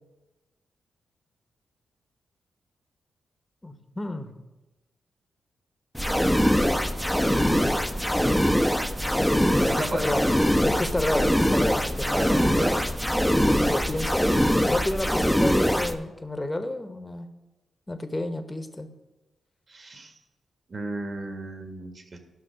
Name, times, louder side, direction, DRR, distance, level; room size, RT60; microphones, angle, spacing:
voice 1, 3.6-4.3 9.4-10.3 10.6-12.2 13.4-17.3 17.9-18.9, left 1 dB, 20° left, 8 dB, 1.2 m, -30 dB
sound 1, 5.9-15.9, equal, 5° left, 0.9 m, -23 dB
voice 2, 9.4-10.0 12.1-12.9 19.7-20.1 20.7-22.2, right 2 dB, 50° right, 5 dB, 1.7 m, -35 dB
12.0 x 5.8 x 5.8 m, 1.1 s
supercardioid pair, 45°, 0 cm